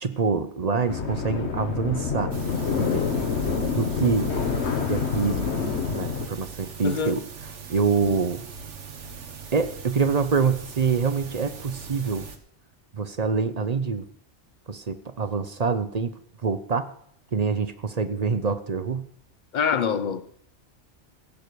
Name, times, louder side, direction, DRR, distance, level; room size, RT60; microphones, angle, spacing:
voice 1, 0.0-2.3 2.7-3.0 3.8-4.3 4.9-5.5 5.9-7.2 7.7-8.4 9.5-12.3 12.9-14.0 14.7-16.1 16.4-16.9 17.3-19.1, right 5 dB, 40° right, 0.7 m, -25 dB
sound 1, 0.9-6.3, left 5 dB, 65° left, 1.4 m, -27 dB
sound 2, 2.3-12.4, right 5 dB, 80° right, 1.4 m, -41 dB
voice 2, 6.8-7.2 19.5-20.2, left 7 dB, 45° left, 0.8 m, -25 dB
16.0 x 6.2 x 6.8 m
omnidirectional pair, 1.2 m